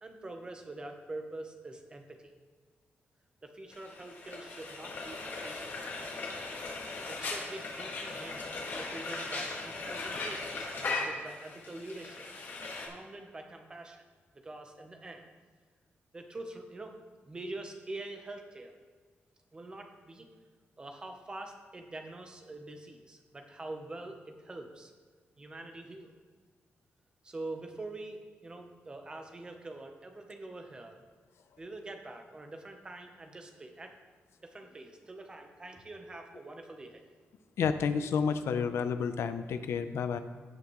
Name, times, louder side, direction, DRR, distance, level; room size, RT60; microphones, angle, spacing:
voice 1, 0.0-2.3 3.4-5.8 7.1-12.3 12.8-14.0 14.3-15.3 16.1-17.0 17.2-18.7 19.5-20.3 20.8-24.9 25.4-26.1 27.2-31.0 31.6-34.0 34.4-37.0, right 2 dB, 20° right, 4 dB, 0.9 m, -45 dB
Frying (food), 3.7-12.9, left 3 dB, 55° left, 1.8 m, -38 dB
voice 2, 37.6-40.2, left 6 dB, 80° left, 10 dB, 0.6 m, -30 dB
16.5 x 5.8 x 3.1 m, 1.6 s
wide cardioid pair, 170°, 4 cm